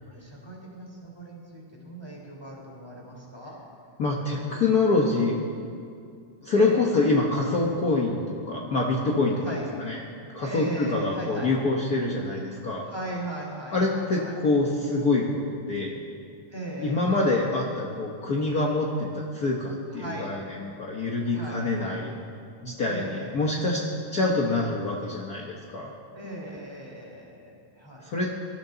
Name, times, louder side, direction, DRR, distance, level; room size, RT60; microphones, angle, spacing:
voice 1, 0.0-3.6 6.5-7.2 9.4-9.7 10.4-11.5 12.8-14.3 16.5-17.3 19.9-20.3 21.3-22.0 22.8-23.6 26.1-28.1, right 1 dB, 10° right, -3 dB, 3.2 m, -38 dB
voice 2, 4.0-5.4 6.4-9.5 9.8-10.0 10.3-12.8 13.7-15.2 15.7-16.0 16.8-20.3 20.8-22.1 22.6-23.8 24.1-25.9 28.0-28.3, left 3 dB, 60° left, -2 dB, 1.0 m, -25 dB
24.5 x 13.5 x 4.0 m, 2.4 s
omnidirectional pair, 3.6 m